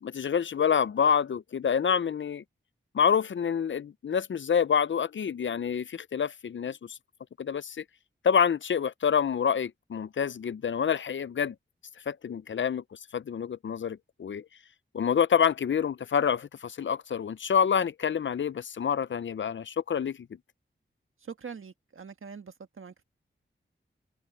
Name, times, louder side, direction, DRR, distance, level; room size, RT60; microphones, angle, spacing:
voice 1, 0.0-2.4 2.9-7.0 7.4-7.8 8.2-11.5 12.1-14.4 14.9-20.2, left 7 dB, 65° left, 0.5 m, -27 dB
voice 2, 21.2-22.9, right 6 dB, 75° right, 1.6 m, -43 dB
cardioid pair, 55°, 21 cm